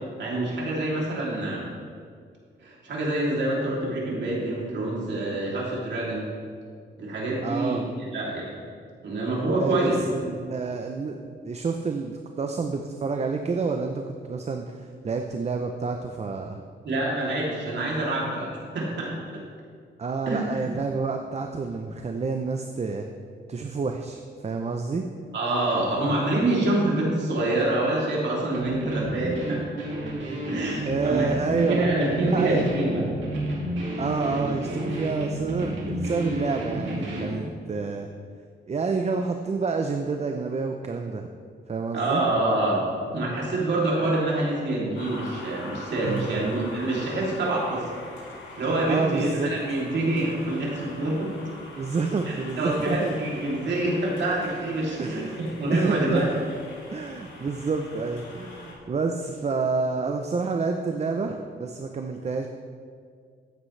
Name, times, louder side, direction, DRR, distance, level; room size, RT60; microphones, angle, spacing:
voice 1, 0.2-1.7 2.6-6.3 7.0-8.6 9.0-10.0 16.8-19.1 20.3-20.7 25.3-30.1 30.5-31.3 31.7-33.0 41.9-42.9 43.1-47.8 48.6-51.3 52.3-56.3, right 2 dB, 70° right, -4 dB, 3.0 m, -26 dB
voice 2, 7.4-7.8 9.6-16.6 20.0-23.1 23.5-25.0 30.9-32.7 34.0-38.1 38.7-41.3 41.7-42.2 46.0-46.4 48.9-49.5 51.8-53.2 55.0-55.4 55.7-56.4 56.9-62.5, right 4 dB, 35° right, 4 dB, 0.6 m, -29 dB
sound 1, 28.5-37.4, right 1 dB, 90° right, 2.4 m, -31 dB
sound 2, 44.9-58.7, left 2 dB, 90° left, 2.5 m, -43 dB
13.0 x 9.0 x 3.3 m, 2.1 s
cardioid pair, 95°, 19 cm